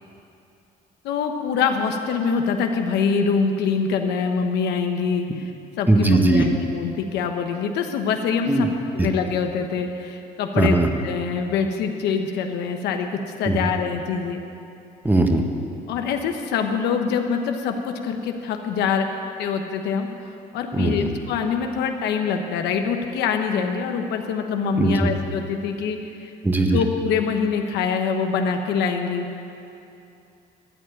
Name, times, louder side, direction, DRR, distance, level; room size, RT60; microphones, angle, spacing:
voice 1, 1.0-5.5 5.8-8.7 8.9-10.8 11.0-14.4 15.9-19.0 19.4-20.1 20.5-29.3, left 6 dB, 80° left, 5 dB, 1.2 m, -24 dB
voice 2, 5.9-6.5 8.5-8.7 9.0-9.1 10.6-10.9 13.5-13.7 15.0-15.4 20.7-21.1 24.8-25.1 26.4-26.8, right 2 dB, 10° right, 4 dB, 1.2 m, -19 dB
13.0 x 7.7 x 9.1 m, 2.7 s
cardioid pair, 110°, 17 cm